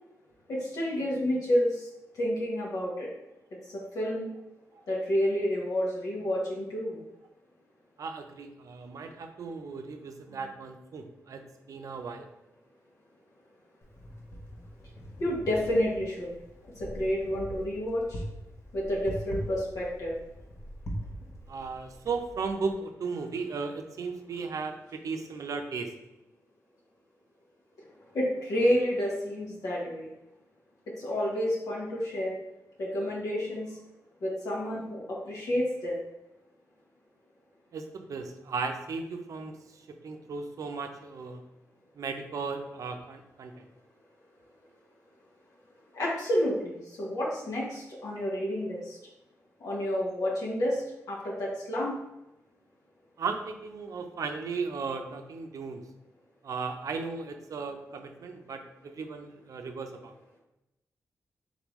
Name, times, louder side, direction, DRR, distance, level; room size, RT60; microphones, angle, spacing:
voice 1, 0.5-1.9 2.1-3.1 3.7-4.3 4.9-7.0 15.2-16.3 16.8-18.2 18.7-20.1 28.1-30.1 31.0-32.4 32.8-33.7 34.2-35.0 35.2-36.0 45.9-49.0 49.6-50.8 51.1-51.9, equal, 75° left, -5 dB, 1.1 m, -29 dB
voice 2, 8.0-12.2 21.5-25.9 37.7-41.4 42.0-43.7 53.2-55.8 56.4-60.1, right 4 dB, 70° right, 5 dB, 0.5 m, -36 dB
Wind, 13.8-22.7, equal, 50° left, 0.9 m, -42 dB
3.8 x 3.5 x 3.0 m, 0.93 s
cardioid pair, 55°, 6 cm